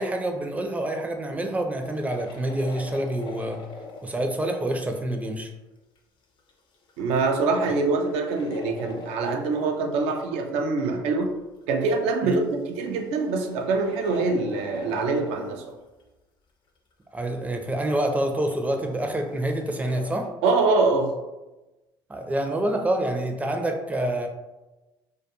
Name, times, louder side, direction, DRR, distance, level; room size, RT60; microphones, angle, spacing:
voice 1, 0.0-3.6 4.0-5.5 12.2-12.4 17.1-20.3 22.1-24.3, right 1 dB, 15° right, 3 dB, 0.4 m, -27 dB
sound 1, 1.8-4.4 6.0-6.1 6.4-9.8 10.4-10.5 11.2-11.6 11.9-15.7 16.0-16.1 16.9-17.0 18.2-20.3, left 2 dB, 45° left, 0.5 m, -43 dB
voice 2, 7.0-11.3 11.7-15.8 20.4-21.1, right 3 dB, 70° right, 4 dB, 0.4 m, -24 dB
2.2 x 2.2 x 2.8 m, 1.1 s
hypercardioid pair, 60°, 11 cm